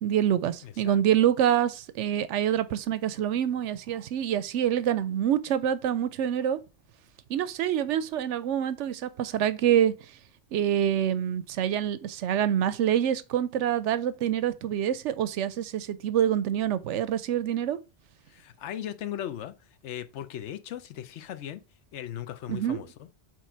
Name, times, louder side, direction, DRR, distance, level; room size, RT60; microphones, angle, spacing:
voice 1, 0.0-6.6 7.3-9.9 10.5-17.8 22.5-22.8, right 10 dB, 85° right, 0.9 m, -26 dB
voice 2, 0.6-1.0 18.3-19.5 19.8-21.6 21.9-23.1, left 10 dB, 80° left, 1.0 m, -38 dB
7.7 x 3.2 x 4.5 m
omnidirectional pair, 1.2 m